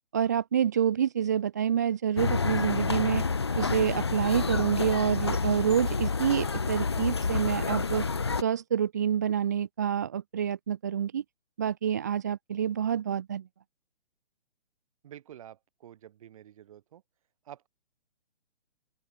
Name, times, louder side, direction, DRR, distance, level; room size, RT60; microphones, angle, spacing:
voice 1, 0.1-3.3 3.6-8.1 8.4-11.2 11.6-13.5, right 9 dB, 15° right, 0.7 m, -27 dB
sound 1, 2.2-8.4, left 4 dB, 25° left, 0.5 m, -29 dB
voice 2, 15.0-17.0 17.4-17.7, right 11 dB, 30° right, 5.1 m, -49 dB
open air
hypercardioid pair, 175°, 32 cm